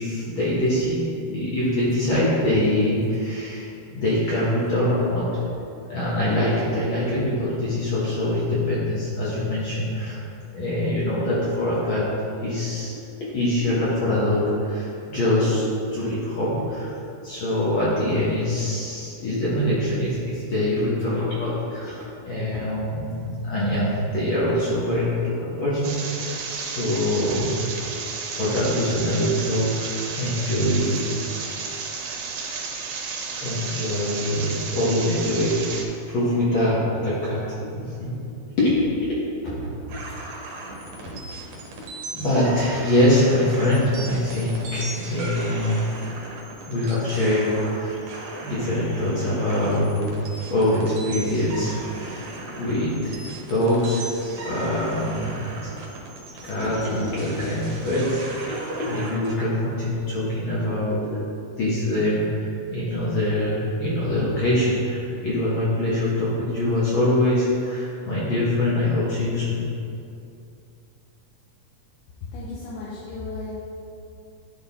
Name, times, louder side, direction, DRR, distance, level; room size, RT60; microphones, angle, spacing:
voice 1, 0.0-5.6 5.9-10.2 10.5-12.0 12.4-15.6 15.9-16.9 17.2-27.6 28.3-31.0 33.4-38.2 38.6-39.2 40.9-41.1 42.0-45.8 46.7-48.0 48.4-50.0 50.5-52.3 52.6-54.0 54.3-55.7 56.4-61.2 61.6-69.6, left 1 dB, 55° left, -8 dB, 1.4 m, -24 dB
sound 1, 25.8-35.8, right 5 dB, 90° right, 2.3 m, -32 dB
sound 2, 39.9-59.4, right 2 dB, 70° right, 2.3 m, -37 dB
voice 2, 72.2-73.5, left 3 dB, 75° left, -7 dB, 2.3 m, -34 dB
11.0 x 3.9 x 3.6 m, 2.6 s
omnidirectional pair, 3.7 m